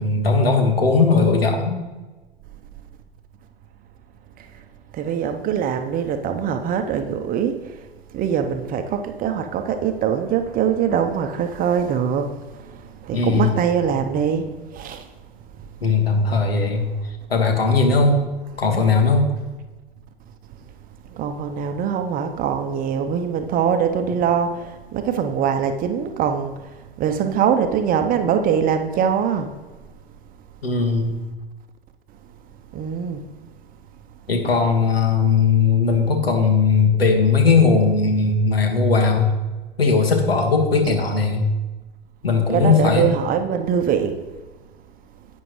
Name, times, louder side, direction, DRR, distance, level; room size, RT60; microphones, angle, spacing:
voice 1, 0.0-1.8 13.1-13.5 15.8-16.9 17.3-18.2 18.6-19.3 24.1-24.2 30.6-31.1 34.3-39.3 39.8-41.4 42.2-43.1, left 4 dB, 80° left, 1.8 m, -18 dB
voice 2, 4.9-7.6 8.1-12.3 12.7-12.8 13.0-15.0 21.1-26.5 27.0-29.5 32.7-33.2 42.5-44.2, right 7 dB, 30° right, 0.8 m, -22 dB
11.0 x 8.6 x 3.2 m
figure-of-eight pair, 90°, 29 cm